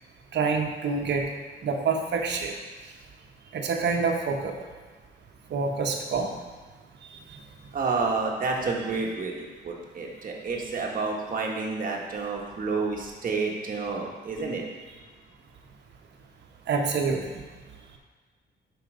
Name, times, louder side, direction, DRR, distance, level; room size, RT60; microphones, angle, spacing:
voice 1, 0.3-1.2 1.6-2.5 3.5-4.5 5.5-6.3 16.7-17.2, right 4 dB, 60° right, 2 dB, 1.1 m, -26 dB
voice 2, 7.7-14.6, right 4 dB, 45° right, -1 dB, 1.5 m, -29 dB
5.7 x 5.4 x 5.1 m, 1.4 s
cardioid pair, 90°, 20 cm